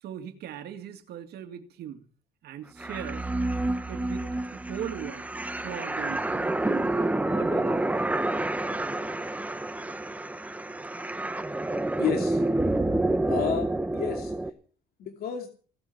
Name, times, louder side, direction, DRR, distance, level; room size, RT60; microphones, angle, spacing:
voice 1, 0.0-2.0 2.4-3.3 3.9-5.3 5.6-7.0 7.3-7.8, right 9 dB, 70° right, 7 dB, 2.1 m, -39 dB
sound 1, 2.8-14.5, right 2 dB, 10° right, 1.1 m, -28 dB
voice 2, 12.0-12.4 13.3-14.3 15.0-15.5, left 8 dB, 65° left, 5 dB, 2.5 m, -31 dB
17.0 x 12.0 x 6.0 m, 0.41 s
cardioid pair, 110°, 17 cm